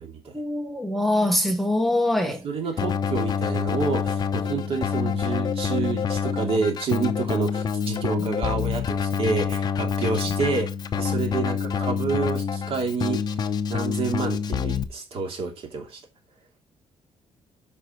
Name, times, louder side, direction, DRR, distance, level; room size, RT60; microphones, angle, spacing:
voice 1, 0.3-2.4, left 1 dB, ahead, 1.0 m, -23 dB
voice 2, 2.4-10.7 11.0-13.2 13.7-16.0, right 4 dB, 55° right, 2.7 m, -28 dB
Keyboard (musical), 2.8-14.8, left 6 dB, 40° left, 0.8 m, -27 dB
9.4 x 5.4 x 4.5 m
cardioid pair, 170°, 11 cm